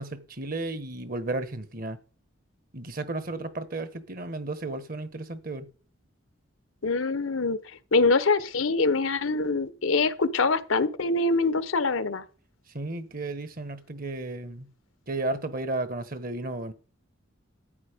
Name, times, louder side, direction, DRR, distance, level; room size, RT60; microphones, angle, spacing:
voice 1, 0.0-2.0 2.7-5.7 12.7-14.7 15.1-16.7, right 2 dB, 45° right, 1.2 m, -33 dB
voice 2, 6.8-7.6 7.9-12.2, left 3 dB, 85° left, 0.9 m, -24 dB
14.0 x 9.2 x 5.1 m
head